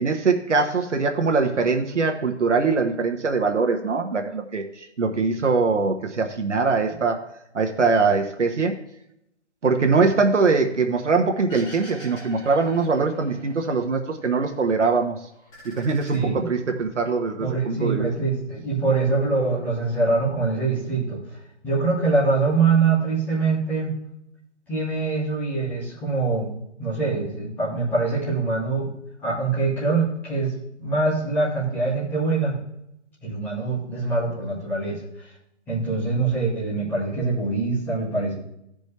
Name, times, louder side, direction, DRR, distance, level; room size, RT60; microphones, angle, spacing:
voice 1, 0.0-7.2 7.5-8.8 9.6-15.2 15.8-18.1, right 4 dB, 80° right, 4 dB, 1.4 m, -22 dB
sound 1, 11.5-13.8 14.2-15.0 15.3-16.8, right 1 dB, 30° left, 3.7 m, -45 dB
voice 2, 16.1-16.5 17.4-21.2 21.6-24.0 24.7-26.5 26.8-28.9 29.2-30.5 30.8-32.6 33.2-35.0 35.7-38.3, right 3 dB, 5° left, -10 dB, 2.2 m, -24 dB
14.5 x 5.2 x 3.4 m, 0.80 s
hypercardioid pair, 170°, 35 cm